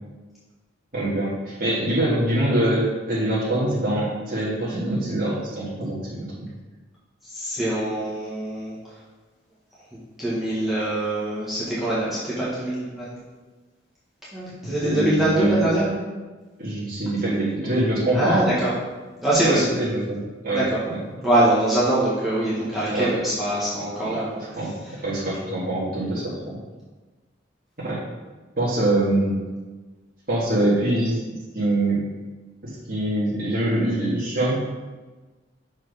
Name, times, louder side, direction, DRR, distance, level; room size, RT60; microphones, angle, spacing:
voice 1, 0.9-6.5 14.6-15.6 16.6-18.4 19.5-21.0 22.9-23.1 24.6-24.7 25.0-26.6 27.8-28.0 28.6-29.4 30.3-31.2 31.5-32.0 32.6-34.5, right 1 dB, 45° right, -10 dB, 1.7 m, -24 dB
voice 2, 7.3-8.7 10.2-13.2 14.3-15.9 18.1-18.7 19.2-19.7 20.5-20.8 21.2-24.4, right 1 dB, ahead, -11 dB, 1.6 m, -23 dB
6.5 x 4.4 x 5.1 m, 1.3 s
head